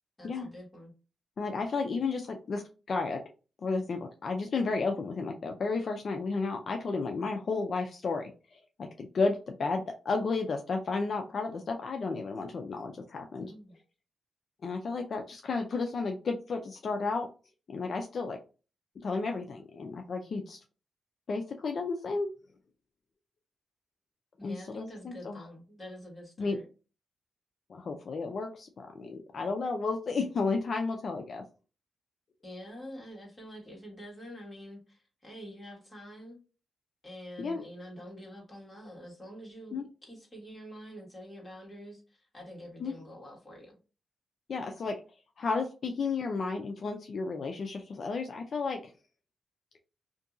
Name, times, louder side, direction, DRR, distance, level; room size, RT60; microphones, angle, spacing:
voice 1, 0.2-0.9 13.4-13.7 24.4-26.6 32.4-36.4 37.0-43.8, equal, 15° left, -3 dB, 1.5 m, -46 dB
voice 2, 1.4-3.2 3.6-13.5 14.6-17.3 17.7-18.4 19.0-20.6 21.3-22.3 24.4-25.4 26.4-26.6 27.7-31.4 37.4-37.6 39.7-39.8 42.8-42.9 44.5-45.0 45.4-48.9, left 4 dB, 55° left, 4 dB, 0.4 m, -32 dB
2.7 x 2.5 x 2.5 m, 0.34 s
cardioid pair, 95°, 0 cm